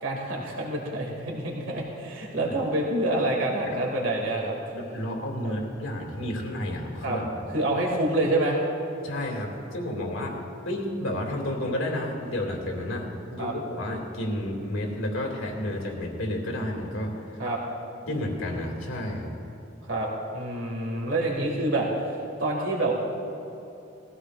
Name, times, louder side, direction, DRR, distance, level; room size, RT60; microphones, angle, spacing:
voice 1, 0.0-4.5 5.4-5.5 7.0-7.2 7.5-8.6 13.4-13.5 17.4-17.6 19.8-22.9, right 1 dB, 75° right, -2 dB, 2.3 m, -27 dB
voice 2, 4.7-7.3 9.0-10.3 10.6-17.4 18.1-19.3, left 1 dB, 90° left, 0 dB, 2.4 m, -31 dB
20.0 x 15.0 x 2.5 m, 3.0 s
head